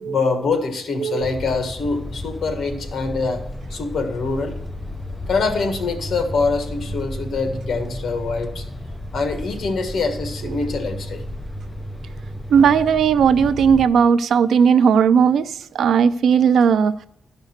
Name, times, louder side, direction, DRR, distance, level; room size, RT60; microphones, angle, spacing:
voice 1, 0.0-3.4 3.7-4.6 5.3-8.6 9.1-11.2, left 4 dB, 65° left, 1.6 m, -24 dB
sound 1, 1.2-13.9, left 1 dB, 10° left, 0.5 m, -33 dB
voice 2, 12.5-15.5 15.7-17.1, right 7 dB, 85° right, 0.4 m, -16 dB
12.0 x 5.3 x 6.5 m
wide cardioid pair, 170°, 0 cm